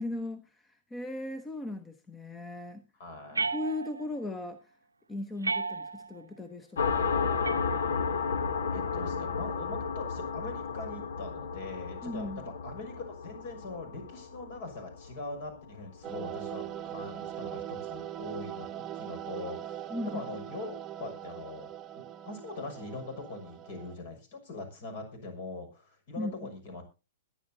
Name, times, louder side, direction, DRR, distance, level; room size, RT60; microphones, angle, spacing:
voice 1, 0.0-2.8 3.5-4.7 5.1-7.3 12.0-12.4 19.9-20.2 26.2-26.3, left 1 dB, 15° left, 10 dB, 1.0 m, -37 dB
voice 2, 3.0-3.5 8.7-26.8, left 3 dB, 55° left, 7 dB, 6.2 m, -42 dB
sound 1, 3.3-4.2 5.4-6.2 7.4-8.3, right 3 dB, 90° right, 0.7 m, -34 dB
sound 2, 6.8-16.0, left 5 dB, 70° left, 1.2 m, -33 dB
sound 3, 16.0-24.0, right 11 dB, 30° right, 0.9 m, -41 dB
22.0 x 9.8 x 2.8 m, 0.29 s
hypercardioid pair, 115°, 0 cm